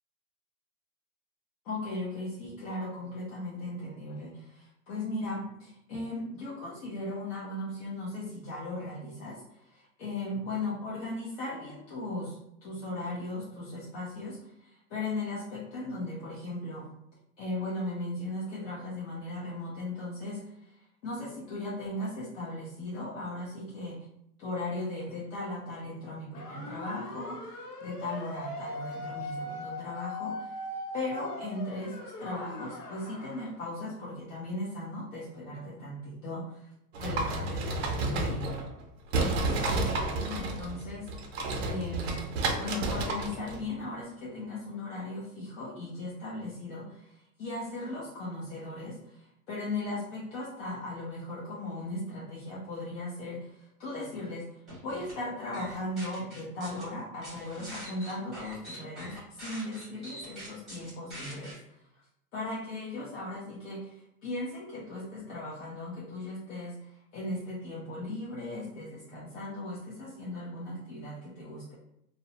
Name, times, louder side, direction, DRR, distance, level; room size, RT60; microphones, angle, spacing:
voice 1, 1.6-16.9 17.4-24.0 24.4-30.6 30.9-38.6 39.2-42.2 42.6-61.8 62.3-71.7, left 2 dB, 55° left, -6 dB, 0.8 m, -37 dB
sound 1, 26.3-33.5, left 2 dB, 85° left, 0.8 m, -40 dB
sound 2, 36.9-38.8 39.1-43.6, right 2 dB, 45° right, 0.4 m, -31 dB
sound 3, 54.7-55.1 55.5-56.8 57.2-61.5, equal, ahead, 0.8 m, -44 dB
2.6 x 2.0 x 2.7 m, 0.80 s
supercardioid pair, 160°, 47 cm